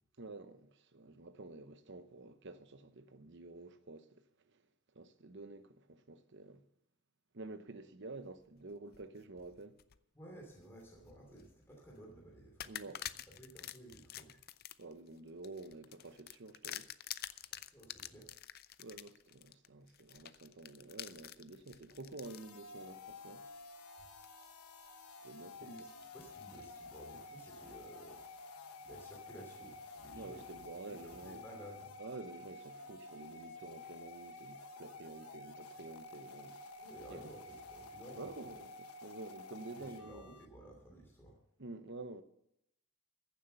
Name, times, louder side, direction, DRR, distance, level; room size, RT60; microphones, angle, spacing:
voice 1, 0.2-4.1 4.5-4.6 4.9-6.6 7.3-9.8 12.7-13.0 14.8-16.9 18.8-23.4 25.2-25.7 30.1-31.4 32.0-36.6 37.1-37.3 38.2-40.3 41.6-42.2, right 2 dB, 55° right, 0.9 m, -49 dB
sound 1, 8.7-10.0 10.5-11.5 11.9-12.0 12.6-22.5 23.1-23.2 24.2-24.7 25.1-26.8, left 12 dB, 45° left, 0.5 m, -49 dB
voice 2, 10.1-12.8 13.3-14.4 17.5-18.3 25.6-28.2 28.8-31.9 36.8-38.5 39.8-41.4, right 1 dB, 10° left, 2.8 m, -54 dB
sound 2, 22.2-40.5, left 2 dB, 90° left, 1.2 m, -51 dB
15.0 x 7.4 x 6.8 m
head